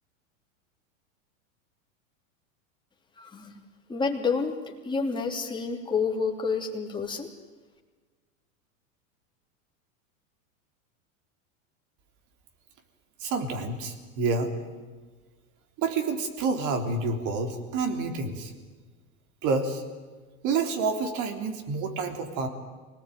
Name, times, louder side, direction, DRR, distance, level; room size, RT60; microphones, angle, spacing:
voice 1, 3.2-3.6 3.9-4.6 4.8-7.3, left 5 dB, 10° left, 0 dB, 3.3 m, -29 dB
voice 2, 13.2-14.5 15.8-18.5 19.4-19.8 20.4-22.5, right 4 dB, 45° right, 6 dB, 3.6 m, -28 dB
24.5 x 19.0 x 9.3 m, 1.4 s
hypercardioid pair, 115°, 42 cm